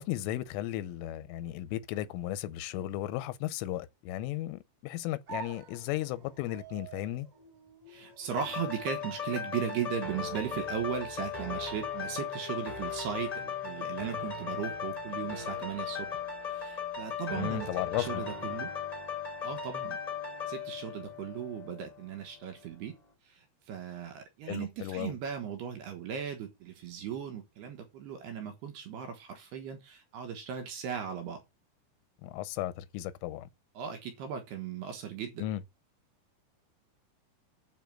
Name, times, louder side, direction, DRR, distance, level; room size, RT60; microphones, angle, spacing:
voice 1, 0.0-7.3 17.3-18.2 24.5-25.1 32.2-33.5 35.4-35.6, left 14 dB, 85° left, 3.3 m, -35 dB
sound 1, 5.3-13.2, right 5 dB, 35° right, 3.2 m, -50 dB
voice 2, 7.9-16.1 16.5-18.7 19.4-20.0 20.5-22.9 23.3-31.4 33.8-35.4, right 8 dB, 70° right, 2.9 m, -37 dB
sound 2, 8.3-22.0 22.5-22.6, left 6 dB, 20° left, 0.9 m, -37 dB
9.4 x 4.4 x 7.6 m
omnidirectional pair, 5.7 m